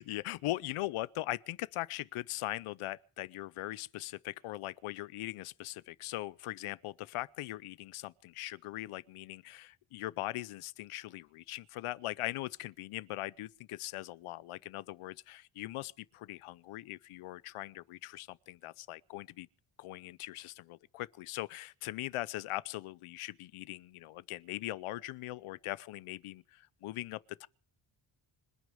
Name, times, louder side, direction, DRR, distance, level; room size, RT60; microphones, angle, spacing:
voice 1, 0.0-19.5 19.8-27.5, left 16 dB, 90° left, 0.7 m, -40 dB
26.0 x 9.5 x 4.9 m
cardioid pair, 130°, 49 cm